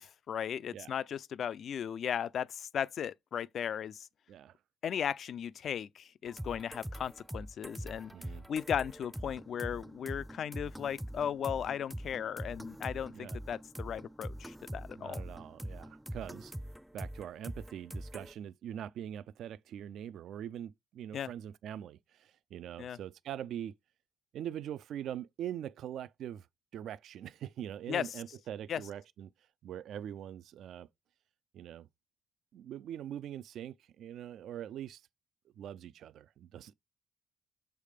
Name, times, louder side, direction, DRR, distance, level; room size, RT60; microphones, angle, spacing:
voice 1, 0.0-4.1 4.8-8.1 8.5-15.2 21.1-21.3 22.8-23.0 27.9-28.1 28.7-28.8, left 8 dB, 60° left, 0.4 m, -36 dB
sound 1, 6.3-18.3, equal, 5° right, 0.4 m, -43 dB
voice 2, 8.1-8.4 13.1-13.4 15.0-16.5 16.9-23.8 24.3-26.5 26.7-29.3 29.6-30.9 31.5-31.9 32.5-35.0 35.6-36.7, right 10 dB, 75° right, 0.3 m, -43 dB
6.5 x 3.4 x 5.0 m
cardioid pair, 90°, 0 cm